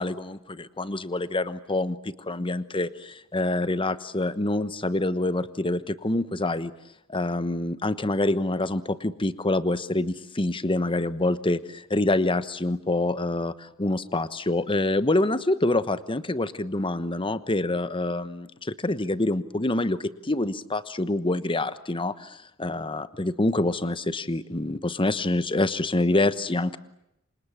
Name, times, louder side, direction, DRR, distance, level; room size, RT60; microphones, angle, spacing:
voice 1, 0.0-6.7 7.1-26.8, left 2 dB, 25° left, 14 dB, 1.1 m, -26 dB
29.0 x 26.0 x 7.4 m, 0.83 s
head